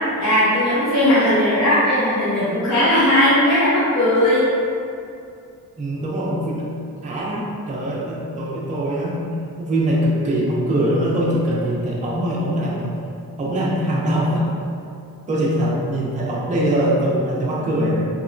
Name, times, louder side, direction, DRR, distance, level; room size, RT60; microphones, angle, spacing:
voice 1, 0.2-4.5, left 1 dB, 55° left, -12 dB, 0.7 m, -17 dB
voice 2, 5.8-6.6 7.0-12.9 13.4-14.6 15.3-18.1, right 1 dB, 25° right, -5 dB, 0.3 m, -22 dB
2.9 x 2.0 x 2.4 m, 2.4 s
wide cardioid pair, 160°, 34 cm